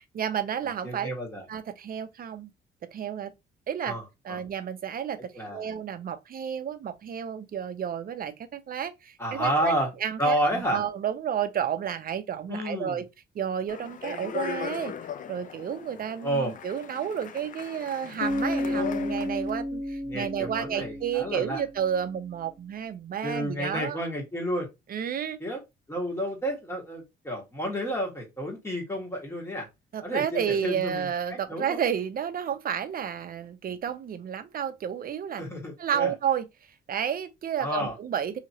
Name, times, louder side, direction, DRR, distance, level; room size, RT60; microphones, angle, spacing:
voice 1, 0.1-1.1 1.5-2.5 2.9-3.3 3.7-4.0 4.2-9.7 10.0-13.0 13.3-14.9 15.3-24.0 24.9-25.4 29.9-35.4 35.8-36.5 36.9-38.4, right 8 dB, 50° right, 0.5 m, -31 dB
voice 2, 0.8-1.4 3.8-4.4 5.3-5.7 9.2-9.9 10.2-10.8 12.5-13.0 16.2-16.5 20.1-21.6 23.2-24.7 25.4-25.6 25.9-29.7 30.0-31.8 35.4-36.1 37.6-37.9, equal, 15° left, 1.6 m, -30 dB
Speech, 13.7-19.5, left 8 dB, 40° left, 0.4 m, -38 dB
Bass guitar, 18.2-22.0, left 1 dB, 85° left, 0.8 m, -32 dB
2.8 x 2.8 x 2.7 m
cardioid pair, 90°, 20 cm